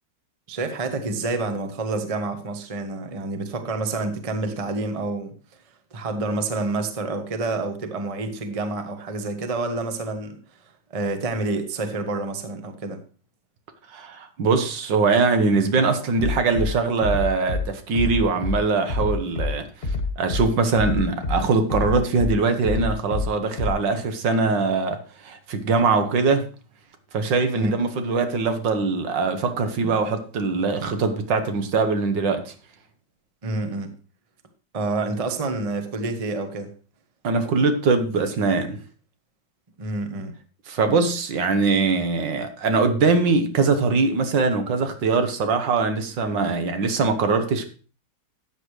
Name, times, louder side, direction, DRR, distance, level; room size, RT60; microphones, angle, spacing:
voice 1, 0.5-5.3 5.9-10.4 10.9-13.0 27.5-27.8 33.4-33.9 34.7-36.7 39.8-40.3, right 3 dB, 25° right, 0.9 m, -28 dB
voice 2, 13.9-25.0 25.2-26.5 27.1-32.5 37.2-38.8 40.7-47.7, right 4 dB, 80° right, 1.8 m, -22 dB
Bass drum, 16.2-16.7 17.0-17.6 17.9-18.6 18.9-19.5 19.8-20.4 20.8-21.4 21.7-22.3 22.6-23.2 23.6-23.7, left 3 dB, 35° left, 1.4 m, -25 dB
13.0 x 8.2 x 3.2 m
omnidirectional pair, 2.0 m